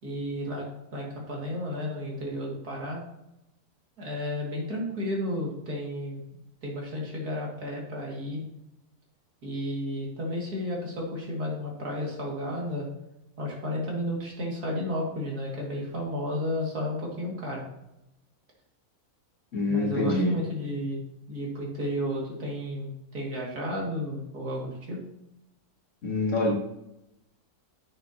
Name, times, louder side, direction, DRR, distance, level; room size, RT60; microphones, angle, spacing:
voice 1, 0.0-0.6 0.9-3.0 4.0-6.2 6.6-8.4 9.4-12.9 13.4-17.6 19.7-21.0 21.3-25.0, left 1 dB, 80° right, -3 dB, 3.0 m, -32 dB
voice 2, 19.5-20.4 26.0-26.6, left 2 dB, 55° left, 1 dB, 2.1 m, -26 dB
10.5 x 8.5 x 3.0 m, 0.86 s
omnidirectional pair, 1.6 m